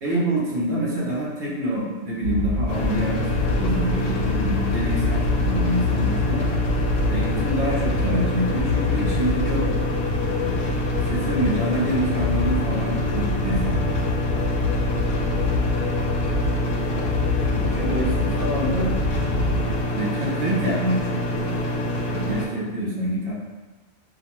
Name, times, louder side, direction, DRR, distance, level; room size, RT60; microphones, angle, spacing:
voice 1, 0.0-3.2 3.5-6.5 7.1-9.7 10.4-10.6 11.0-14.0 17.5-19.0 19.9-21.6 22.1-23.3, right 1 dB, 60° right, -4 dB, 0.8 m, -26 dB
sound 1, 2.2-19.8, left 3 dB, 55° left, 1.0 m, -26 dB
sound 2, 2.7-22.5, left 1 dB, 80° left, 0.9 m, -26 dB
2.4 x 2.1 x 2.9 m, 1.2 s
omnidirectional pair, 1.3 m